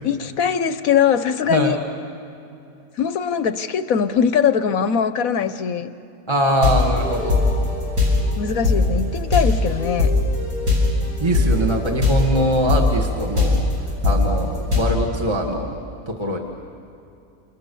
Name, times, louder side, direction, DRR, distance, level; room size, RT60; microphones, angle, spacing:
voice 1, 0.0-1.8 3.0-5.9 8.4-10.1, left 7 dB, 70° left, 11 dB, 1.2 m, -21 dB
voice 2, 6.3-7.4 11.2-15.7 16.1-16.4, right 1 dB, 20° right, 1 dB, 1.7 m, -22 dB
sound 1, 6.5-14.8, left 3 dB, 65° right, 8.1 m, -20 dB
29.0 x 28.0 x 7.0 m, 2.8 s
omnidirectional pair, 1.6 m